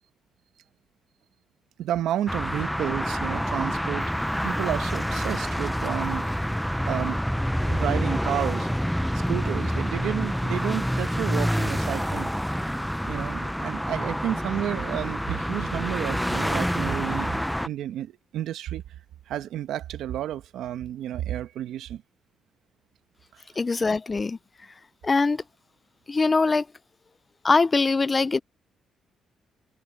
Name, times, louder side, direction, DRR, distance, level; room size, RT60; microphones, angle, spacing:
voice 1, 1.8-6.3 6.9-7.2 7.6-8.7 9.1-12.3 13.0-17.3 17.6-18.8 19.3-22.0, right 11 dB, 80° right, 1.2 m, -31 dB
sound 1, 2.3-17.7, equal, ahead, 0.8 m, -27 dB
voice 2, 23.6-24.4 25.0-25.4 26.1-26.7 27.4-28.4, left 3 dB, 30° left, 0.5 m, -22 dB
cardioid pair, 90°, 0 cm